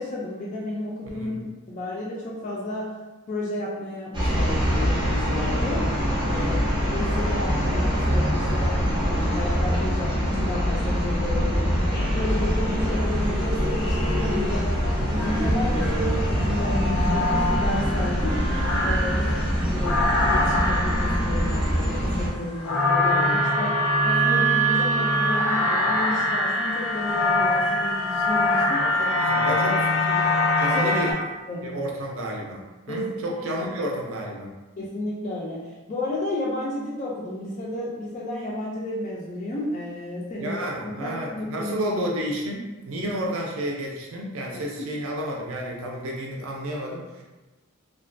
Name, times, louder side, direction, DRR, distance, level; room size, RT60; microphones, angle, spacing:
voice 1, 0.0-2.9 3.3-5.9 6.2-6.6 6.9-8.8 9.1-14.8 15.1-18.5 18.8-19.3 19.7-28.9 29.5-29.6 30.7-30.9 31.5-31.7 32.9-33.3 33.6-33.7 34.8-41.8 44.8-44.9, left 1 dB, 35° left, -5 dB, 0.3 m, -32 dB
sound 1, 4.1-22.3, equal, 20° right, 0.6 m, -24 dB
voice 2, 6.3-6.6 19.1-19.4 28.8-29.8 30.0-30.2 30.6-31.1 31.6-34.5 40.4-47.2, equal, 70° right, -1 dB, 0.5 m, -31 dB
sound 2, 11.9-12.7 13.7-14.4 15.2-31.1, left 1 dB, 80° left, 0.6 m, -24 dB
2.3 x 2.2 x 2.5 m, 1.2 s
head